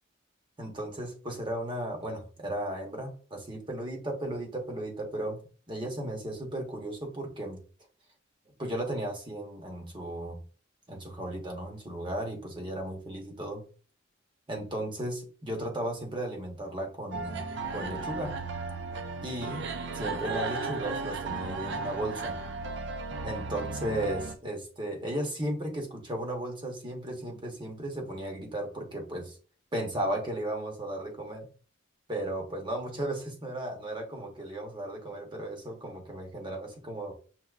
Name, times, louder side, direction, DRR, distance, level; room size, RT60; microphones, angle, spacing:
voice 1, 0.6-5.4 5.7-7.6 8.6-10.4 10.9-13.6 14.5-18.3 19.2-19.7 19.9-22.4 23.2-29.4 29.7-31.5 32.1-37.1, right 1 dB, 25° right, 2 dB, 0.9 m, -35 dB
sound 1, 17.1-24.3, right 3 dB, 65° right, 0.5 m, -35 dB
5.8 x 2.8 x 2.4 m, 0.38 s
head